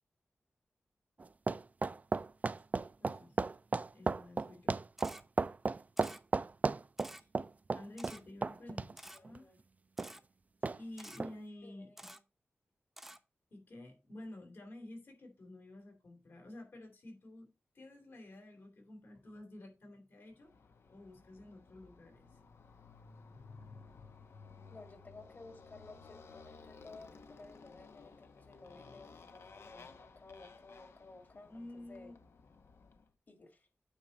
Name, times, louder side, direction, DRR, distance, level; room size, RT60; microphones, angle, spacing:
sound 1, 1.2-8.9 9.2-9.4 10.0-10.1 10.6-10.8 11.2-11.3, right 3 dB, 35° right, 0.4 m, -33 dB
voice 1, 3.0-3.4 3.9-4.7 7.2-7.3 7.7-9.6 10.7-11.9 13.5-20.5 20.9-22.4 31.5-32.1, left 1 dB, 65° left, 3.1 m, -51 dB
Camera, 5.0-5.2 6.0-6.2 7.0-7.2 8.0-8.2 9.0-9.2 10.0-10.2 11.0-11.2 12.0-12.2 13.0-13.2, right 1 dB, 5° right, 0.7 m, -50 dB
voice 2, 8.6-9.6 11.6-12.2 24.7-32.1 33.3-33.7, left 3 dB, 45° left, 2.3 m, -56 dB
Motorcycle, 20.4-33.1, left 4 dB, 80° left, 0.9 m, -56 dB
8.9 x 4.2 x 5.2 m
wide cardioid pair, 85°, 4 cm